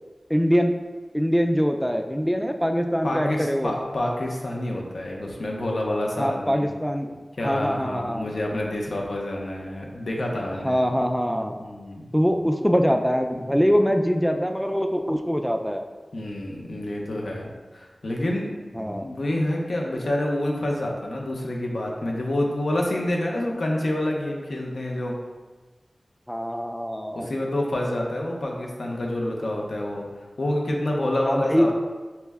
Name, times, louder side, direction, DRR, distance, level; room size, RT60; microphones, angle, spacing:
voice 1, 0.3-0.7 1.1-3.7 6.2-7.2 7.4-8.3 10.6-11.6 12.1-15.8 18.7-19.1 26.3-27.3 31.2-31.7, equal, 5° left, 5 dB, 0.3 m, -23 dB
voice 2, 3.0-6.7 7.4-10.8 11.6-12.0 16.1-18.6 19.0-25.2 27.1-30.1 30.4-31.7, left 1 dB, 80° left, -1 dB, 0.6 m, -28 dB
5.6 x 2.1 x 3.4 m, 1.3 s
wide cardioid pair, 70°, 0 cm